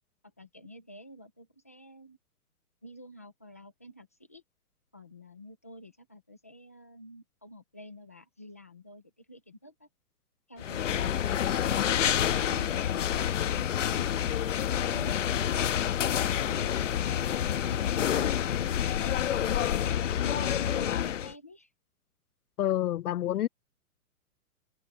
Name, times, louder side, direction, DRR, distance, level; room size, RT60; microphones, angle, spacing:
voice 1, 0.4-2.2 2.8-4.4 4.9-9.9 12.4-14.4 19.3-21.7, equal, 10° left, 0.5 m, -50 dB
sound 1, 10.6-21.3, left 10 dB, 55° left, 1.3 m, -28 dB
voice 2, 22.6-23.5, left 12 dB, 80° left, 0.6 m, -28 dB
hypercardioid pair, 180°, 45 cm